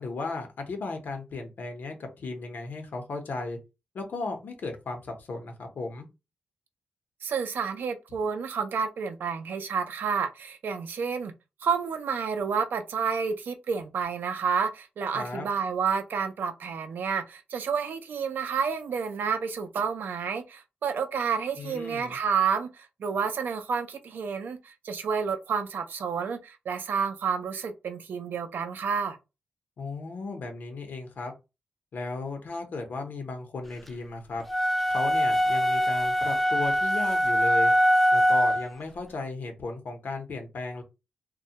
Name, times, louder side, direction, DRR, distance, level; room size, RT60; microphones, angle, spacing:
voice 1, 0.0-3.6 3.9-6.1 15.1-15.5 21.6-22.2 29.8-31.3 31.9-34.4 34.9-37.7 38.1-40.8, left 3 dB, 70° left, 0.7 m, -35 dB
voice 2, 7.2-11.3 11.6-29.2, right 6 dB, 80° right, 0.4 m, -30 dB
sound 1, 34.5-38.7, equal, 5° left, 0.3 m, -23 dB
2.2 x 2.1 x 2.7 m
cardioid pair, 75°, 3 cm